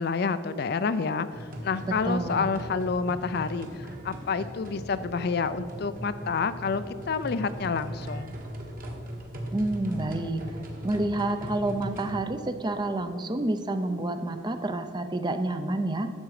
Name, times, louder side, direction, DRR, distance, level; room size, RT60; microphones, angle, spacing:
voice 1, 0.0-8.3, left 5 dB, 55° left, 12 dB, 0.4 m, -29 dB
sound 1, 1.3-12.2, equal, 45° right, 1.5 m, -39 dB
voice 2, 1.8-2.4 9.5-10.4 10.8-16.1, right 2 dB, 20° right, 8 dB, 0.5 m, -29 dB
11.5 x 7.4 x 4.9 m, 2.2 s
head